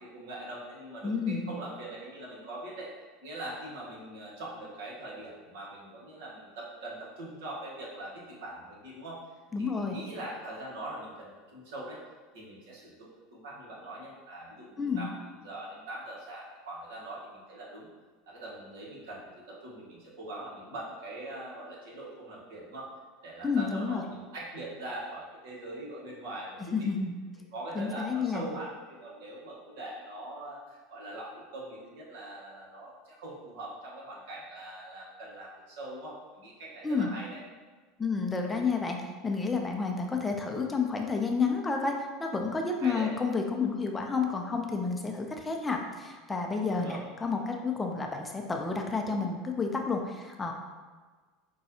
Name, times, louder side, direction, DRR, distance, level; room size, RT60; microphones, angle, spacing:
voice 1, 0.0-2.9 3.2-9.2 9.6-12.0 12.3-17.9 18.3-22.9 23.2-26.9 27.5-37.4 42.8-43.1 46.7-47.0, right 1 dB, 70° right, -5 dB, 1.1 m, -42 dB
voice 2, 1.0-1.5 9.5-10.0 14.8-15.1 23.4-24.0 26.7-27.2 27.7-28.4 36.8-37.1 38.0-50.5, left 4 dB, 15° left, 2 dB, 0.5 m, -30 dB
5.1 x 2.3 x 2.8 m, 1.4 s
hypercardioid pair, 80°, 0 cm